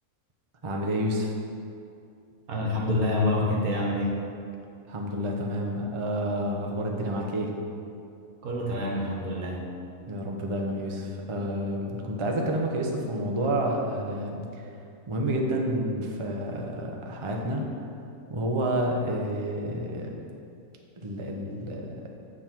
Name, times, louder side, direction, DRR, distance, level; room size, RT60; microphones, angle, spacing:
voice 1, 0.6-1.3 4.9-7.5 10.1-14.7 15.1-17.7 18.3-20.2 21.0-22.0, right 1 dB, 35° right, 0 dB, 0.4 m, -29 dB
voice 2, 2.5-4.1 8.4-9.6, left 1 dB, 70° right, -1 dB, 1.6 m, -27 dB
8.9 x 3.8 x 5.9 m, 2.5 s
omnidirectional pair, 1.6 m